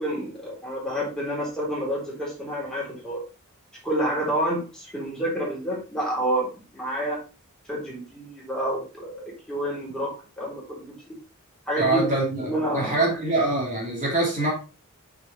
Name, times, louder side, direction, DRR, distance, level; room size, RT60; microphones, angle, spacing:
voice 1, 0.0-3.2 3.8-7.2 7.7-10.9 11.7-12.1 12.4-13.0, right 1 dB, 5° left, -4 dB, 3.6 m, -29 dB
voice 2, 11.8-14.5, right 2 dB, 35° right, -3 dB, 2.7 m, -24 dB
6.3 x 6.0 x 4.3 m, 0.33 s
head